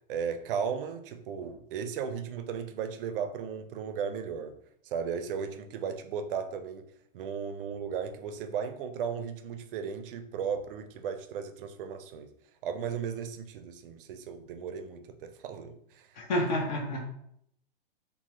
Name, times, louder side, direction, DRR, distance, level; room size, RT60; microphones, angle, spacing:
voice 1, 0.1-4.5 4.8-6.8 7.1-12.3 12.6-16.1, right 7 dB, 65° right, 8 dB, 0.4 m, -35 dB
voice 2, 16.2-17.1, left 1 dB, 50° left, 1 dB, 0.9 m, -29 dB
3.1 x 2.2 x 2.9 m, 0.71 s
hypercardioid pair, 130°, 30 cm